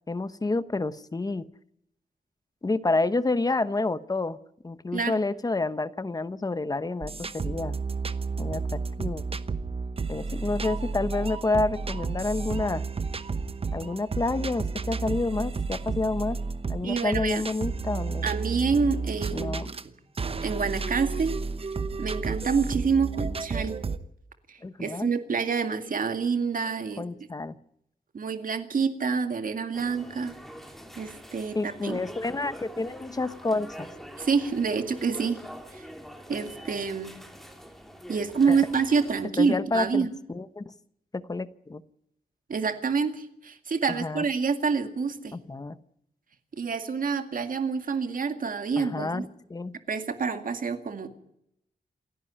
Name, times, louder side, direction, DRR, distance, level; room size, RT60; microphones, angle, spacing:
voice 1, 0.1-1.5 2.6-4.4 4.6-7.8 8.4-9.2 10.1-12.8 13.7-16.4 16.7-18.3 19.3-19.7 24.6-25.1 27.0-27.6 31.5-33.9 38.5-38.6 39.4-40.6 41.1-41.8 43.9-44.2 45.3-45.8 48.8-49.7, left 2 dB, 25° left, 13 dB, 0.9 m, -29 dB
sound 1, 7.0-19.8 20.2-24.0, right 4 dB, 40° right, 1.0 m, -32 dB
voice 2, 16.8-17.4 18.2-19.9 20.4-21.4 22.0-23.8 24.5-27.0 28.1-30.3 31.0-32.0 34.2-35.4 35.7-35.9 36.3-37.1 38.1-40.1 42.5-45.4 46.5-49.3 49.9-51.1, right 5 dB, 60° right, 7 dB, 2.2 m, -27 dB
sound 2, 29.7-39.3, equal, ahead, 2.8 m, -45 dB
28.0 x 11.0 x 9.8 m, 0.77 s
wide cardioid pair, 140°, 16 cm